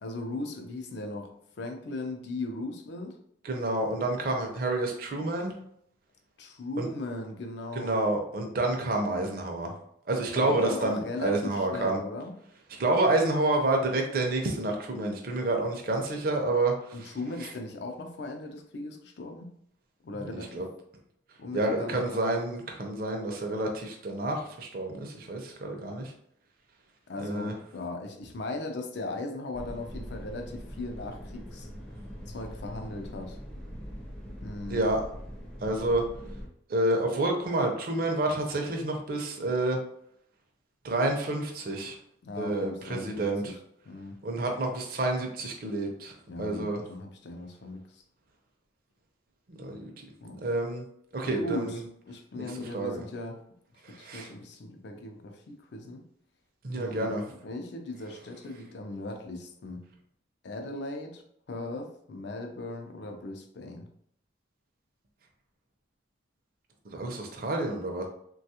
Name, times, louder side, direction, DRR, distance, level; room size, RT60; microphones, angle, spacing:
voice 1, 0.0-3.2 6.4-8.0 10.3-12.3 16.9-19.5 20.0-20.6 21.4-22.4 27.1-31.7 32.3-33.4 34.4-34.8 42.2-43.6 43.9-44.2 46.3-48.0 50.2-50.4 51.3-53.4 53.9-56.0 56.7-59.9 60.4-61.2 61.5-63.9, left 2 dB, 60° left, 4 dB, 0.4 m, -38 dB
voice 2, 3.4-5.5 6.8-6.9 7.8-9.7 10.1-12.0 12.8-16.9 20.3-20.6 21.5-26.1 27.2-27.5 34.7-35.0 35.6-36.1 36.7-39.8 40.8-42.0 42.4-43.6 44.2-46.1 46.4-46.8 49.5-50.0 50.4-50.8 51.1-51.8 52.4-52.5 52.7-53.1 53.8-54.3 56.6-57.2 66.9-68.1, right 2 dB, 50° right, 2 dB, 0.5 m, -29 dB
sound 1, 29.5-36.5, equal, 5° left, 0.5 m, -42 dB
3.3 x 2.3 x 2.7 m, 0.69 s
head